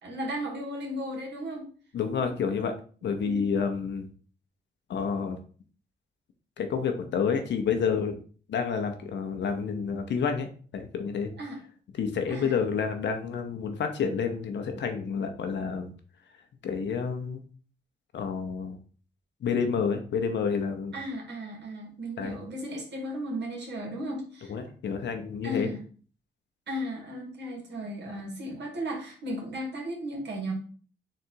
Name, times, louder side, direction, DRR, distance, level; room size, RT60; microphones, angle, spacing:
voice 1, 0.0-1.7 2.2-2.3 3.2-3.5 11.4-11.6 12.3-12.5 20.9-24.5 25.4-25.8 26.7-30.5, equal, 70° right, 0 dB, 1.7 m, -35 dB
voice 2, 1.9-2.7 3.0-4.1 4.9-5.4 6.6-8.2 8.5-10.5 10.7-11.3 12.0-15.9 16.6-17.4 18.1-18.8 19.4-20.9 22.2-22.3 24.5-25.7, left 6 dB, 75° left, 6 dB, 0.8 m, -29 dB
3.9 x 2.6 x 4.5 m, 0.42 s
cardioid pair, 65°, 18 cm